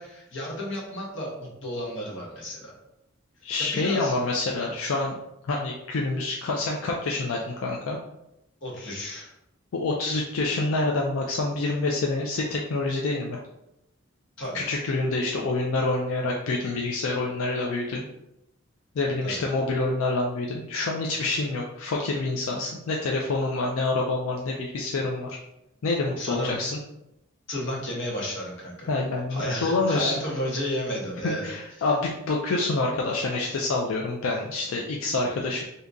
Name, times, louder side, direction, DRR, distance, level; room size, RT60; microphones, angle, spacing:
voice 1, 0.0-2.7 3.6-4.1 8.6-9.3 14.4-14.7 19.2-19.4 26.2-26.6 27.5-28.9 29.3-31.4, equal, 65° left, -2 dB, 1.0 m, -32 dB
voice 2, 3.4-5.2 5.5-8.0 9.7-13.4 14.5-18.1 18.9-25.4 25.8-26.8 28.9-30.2 31.2-35.6, left 3 dB, 90° left, 0 dB, 0.4 m, -27 dB
3.5 x 2.7 x 2.5 m, 0.85 s
head